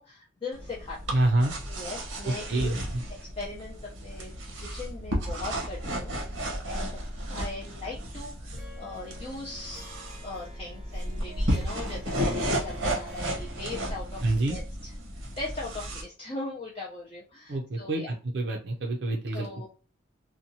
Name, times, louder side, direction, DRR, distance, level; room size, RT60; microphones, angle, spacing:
voice 1, 0.0-1.3 1.7-2.7 3.2-3.7 4.0-6.1 6.6-9.9 10.2-14.2 14.5-14.9 15.4-18.1 19.3-19.7, left 2 dB, 30° left, -4 dB, 0.5 m, -40 dB
sound 1, 0.5-16.0, equal, 85° right, 0.9 m, -33 dB
voice 2, 1.1-1.5 2.2-3.0 14.2-14.6 17.5-18.0 18.3-19.7, right 2 dB, 60° right, 2 dB, 0.5 m, -27 dB
Harp, 8.5-14.3, equal, 20° right, 0.7 m, -50 dB
2.8 x 2.2 x 2.6 m, 0.34 s
head